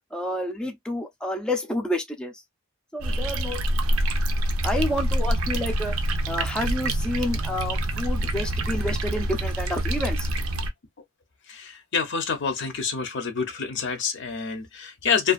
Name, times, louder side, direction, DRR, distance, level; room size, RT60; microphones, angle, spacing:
voice 1, 0.1-2.3 2.9-3.6 4.6-5.9 6.3-10.3, left 1 dB, 5° left, 0.4 m, -29 dB
sound 1, 3.0-10.7, right 1 dB, 85° right, 0.5 m, -26 dB
voice 2, 11.5-15.3, left 6 dB, 60° left, 0.6 m, -27 dB
2.5 x 2.2 x 2.4 m
head